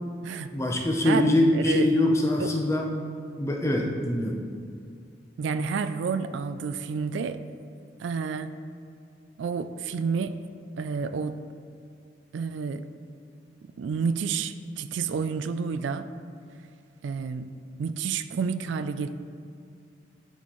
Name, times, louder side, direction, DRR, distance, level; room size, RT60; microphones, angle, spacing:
voice 1, 0.5-2.9 3.4-4.5, left 1 dB, 15° left, 1 dB, 0.5 m, -23 dB
voice 2, 1.5-1.9 2.4-2.5 5.4-7.4 8.0-8.5 9.4-10.4 10.8-11.4 12.3-12.8 13.8-16.1 17.0-17.5 17.8-19.1, right 5 dB, 75° right, 11 dB, 0.3 m, -29 dB
10.5 x 4.3 x 3.1 m, 2.3 s
head